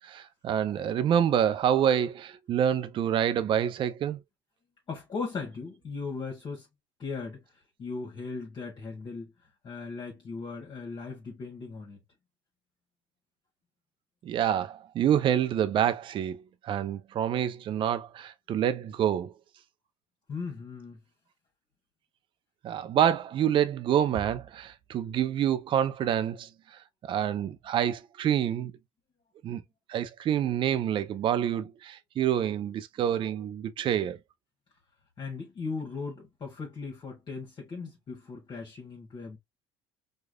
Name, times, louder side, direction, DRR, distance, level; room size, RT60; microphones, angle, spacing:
voice 1, 0.0-4.2 14.2-19.3 22.6-26.5 27.0-28.7 29.4-29.6 29.9-34.2, right 9 dB, 40° right, 0.4 m, -27 dB
voice 2, 4.9-6.7 7.0-7.4 7.8-9.3 9.6-12.0 20.3-21.0 35.2-39.4, left 4 dB, 40° left, 1.3 m, -38 dB
4.6 x 2.3 x 2.3 m
hypercardioid pair, 70°, 12 cm